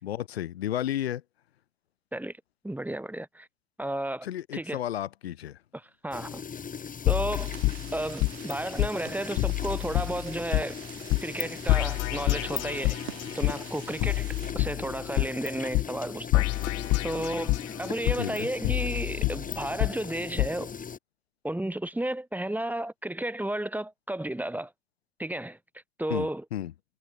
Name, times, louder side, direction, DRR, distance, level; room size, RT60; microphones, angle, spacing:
voice 1, 0.0-1.2 4.2-5.6 18.2-18.5 26.1-26.7, left 12 dB, 80° left, 3.5 m, -32 dB
voice 2, 2.6-3.5 3.8-4.3 4.5-4.8 5.7-6.4 7.0-7.5 7.9-10.8 11.2-13.0 13.3-16.4 17.0-20.7 21.4-24.7 25.2-25.6 26.0-26.4, right 1 dB, 5° right, 3.4 m, -33 dB
sound 1, 6.1-21.0, left 6 dB, 25° left, 4.3 m, -39 dB
sound 2, 7.1-8.5 8.8-8.9 9.4-10.6 11.1-11.4 11.7-13.5 14.0-15.5 15.7-15.8 16.3-17.7 18.1-19.9 20.4-20.5, left 22 dB, 55° left, 3.0 m, -27 dB
sound 3, 7.3-14.5, right 13 dB, 75° right, 4.3 m, -47 dB
hypercardioid pair, 75°, 31 cm